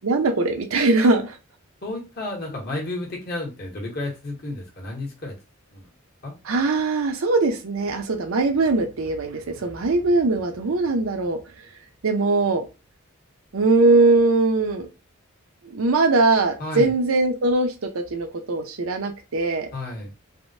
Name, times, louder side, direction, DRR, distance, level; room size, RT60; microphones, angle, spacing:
voice 1, 0.0-1.4 6.5-11.4 12.0-12.6 13.5-14.9 15.7-19.7, right 3 dB, 80° right, 5 dB, 0.6 m, -21 dB
voice 2, 1.8-5.3 5.7-5.9 6.2-6.3 16.6-16.9 19.7-20.1, left 2 dB, 45° left, -1 dB, 1.1 m, -32 dB
3.4 x 2.1 x 2.7 m, 0.28 s
head